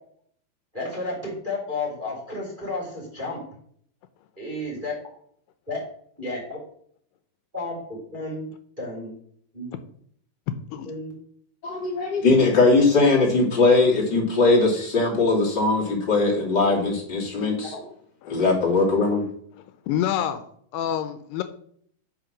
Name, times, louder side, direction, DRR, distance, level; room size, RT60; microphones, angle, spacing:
voice 1, 0.7-3.4 4.4-4.9 5.7-5.8 6.2-6.6 7.5-8.5 8.8-9.1 9.5-9.7 10.8-11.2 17.7-17.8, left 2 dB, 15° right, -4 dB, 2.9 m, -32 dB
voice 2, 11.6-17.7 18.3-19.2, left 3 dB, 30° left, -4 dB, 3.0 m, -20 dB
voice 3, 19.9-20.4 20.7-21.4, left 10 dB, 80° left, 10 dB, 2.7 m, -27 dB
8.9 x 5.8 x 6.1 m, 0.62 s
omnidirectional pair, 4.7 m